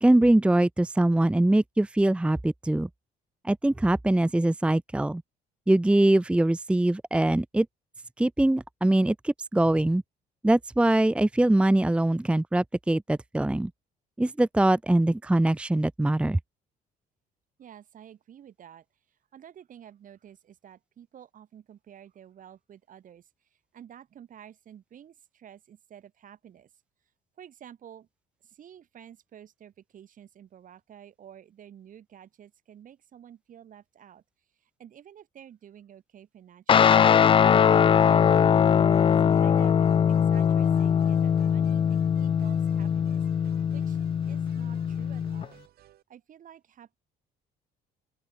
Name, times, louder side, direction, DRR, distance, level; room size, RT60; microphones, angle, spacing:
voice 1, 0.0-2.9 3.4-5.2 5.7-7.7 8.2-10.0 10.4-13.7 14.2-16.4, right 1 dB, 5° right, 0.8 m, -23 dB
voice 2, 17.6-23.3 23.7-26.7 27.4-28.1 28.4-34.2 34.6-37.1 37.5-38.3 39.4-43.2 43.7-45.6 46.1-46.9, right 9 dB, 50° right, 4.3 m, -50 dB
Guitar, 36.7-45.4, left 8 dB, 30° left, 0.4 m, -21 dB
sound 1, 37.8-46.0, right 13 dB, 65° right, 5.8 m, -55 dB
open air
cardioid pair, 110°, 17 cm